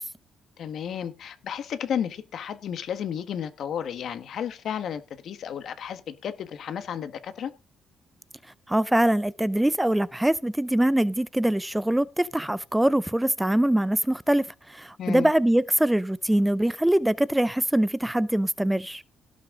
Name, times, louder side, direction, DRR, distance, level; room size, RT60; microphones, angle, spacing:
voice 1, 0.6-7.5 15.0-15.3, left 8 dB, 65° left, 1.5 m, -32 dB
voice 2, 8.7-19.0, right 1 dB, 5° right, 0.5 m, -23 dB
17.0 x 6.4 x 3.8 m
cardioid pair, 90°, 0 cm